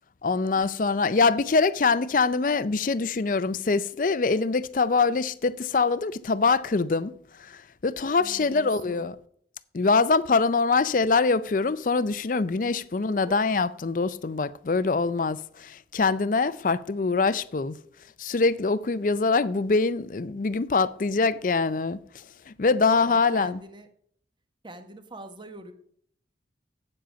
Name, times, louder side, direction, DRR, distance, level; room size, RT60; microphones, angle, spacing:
voice 1, 0.2-7.1 7.4-9.2 9.7-17.8 18.2-22.0 22.5-23.6, left 4 dB, 45° left, 0.5 m, -24 dB
voice 2, 8.2-9.1 13.2-13.4 22.9-23.9 24.6-25.7, right 1 dB, 25° right, 1.0 m, -44 dB
8.7 x 7.6 x 5.1 m
head